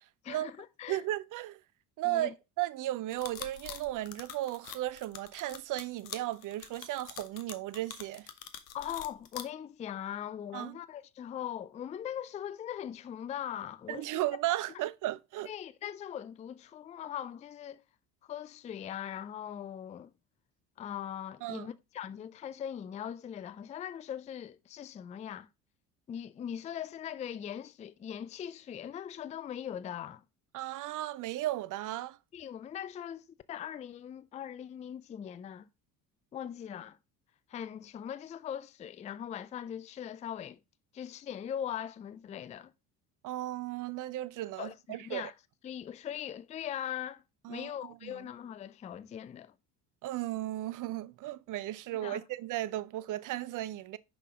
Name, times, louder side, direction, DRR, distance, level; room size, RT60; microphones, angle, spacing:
voice 1, 0.2-1.0 2.0-2.3 8.7-14.2 15.4-17.8 18.3-20.1 20.8-25.5 26.1-30.2 32.3-33.2 33.5-35.7 36.3-37.0 37.5-40.6 40.9-42.7 44.6-45.3 45.6-47.2 47.5-49.5 52.0-52.2, left 9 dB, 15° left, 0.3 m, -40 dB
voice 2, 0.9-1.6 2.0-8.3 10.5-10.8 13.9-15.5 21.4-21.7 30.5-32.2 43.2-45.3 47.4-48.2 50.0-54.0, right 15 dB, 40° right, 0.6 m, -35 dB
sound 1, 3.1-9.4, left 10 dB, 85° left, 0.9 m, -45 dB
6.0 x 5.4 x 3.6 m
hypercardioid pair, 65°, 48 cm